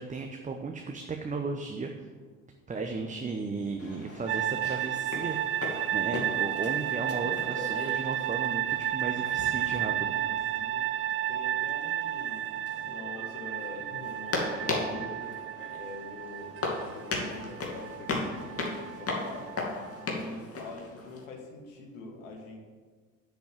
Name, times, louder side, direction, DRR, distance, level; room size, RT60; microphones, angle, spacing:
voice 1, 0.0-2.1 2.7-5.5 5.9-10.1, right 4 dB, 20° right, 4 dB, 0.9 m, -35 dB
sound 1, 3.8-21.2, left 2 dB, 35° left, 2.5 m, -38 dB
sound 2, 4.3-20.0, right 12 dB, 35° right, 0.4 m, -32 dB
voice 2, 9.7-10.8 11.3-15.2 15.7-19.5 20.0-22.6, left 2 dB, 75° left, 2 dB, 1.9 m, -45 dB
7.2 x 6.9 x 7.8 m, 1.5 s
hypercardioid pair, 60°, 39 cm